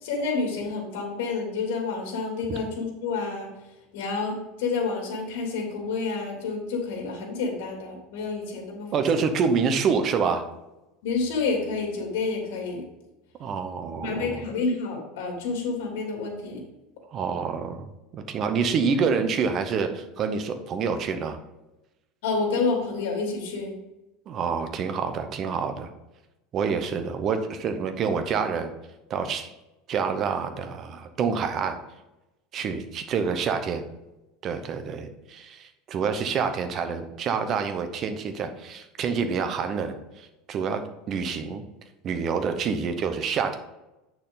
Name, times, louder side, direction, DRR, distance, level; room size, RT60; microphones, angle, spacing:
voice 1, 0.0-3.5 3.9-8.9 11.0-12.8 14.0-16.6 22.2-23.7, left 4 dB, 80° left, 1 dB, 3.0 m, -29 dB
voice 2, 8.9-10.5 13.4-14.4 17.1-21.4 24.3-25.9 26.5-28.7 29.1-29.5 29.9-31.8 32.5-33.8 34.4-41.6 42.0-43.5, right 5 dB, 30° right, 8 dB, 0.8 m, -27 dB
8.2 x 6.8 x 3.9 m, 0.98 s
cardioid pair, 165°, 0 cm